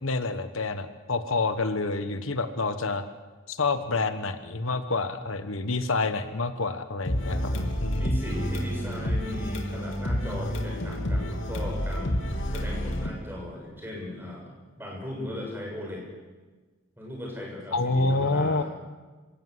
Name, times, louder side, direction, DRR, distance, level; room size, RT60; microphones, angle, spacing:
voice 1, 0.0-3.0 3.5-7.4 7.8-8.2 17.7-18.6, left 3 dB, 85° left, 10 dB, 1.4 m, -28 dB
sound 1, 7.0-13.1, equal, 70° left, 2.8 m, -29 dB
voice 2, 7.2-7.6 7.9-12.2 12.5-14.5 14.8-16.1 17.0-18.6, left 1 dB, 10° right, -1 dB, 6.7 m, -37 dB
26.5 x 17.5 x 8.0 m, 1.3 s
head